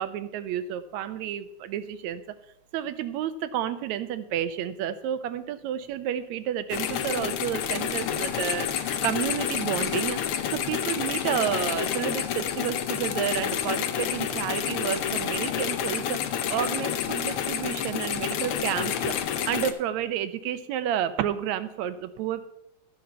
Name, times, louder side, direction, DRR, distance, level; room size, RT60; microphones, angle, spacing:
voice 1, 0.0-2.2 2.7-10.2 10.5-16.2 16.5-19.2 19.5-22.5, right 10 dB, 80° right, 12 dB, 1.9 m, -30 dB
sound 1, 6.7-19.7, left 9 dB, 75° left, 1.2 m, -29 dB
13.5 x 6.7 x 5.7 m, 0.77 s
omnidirectional pair, 3.4 m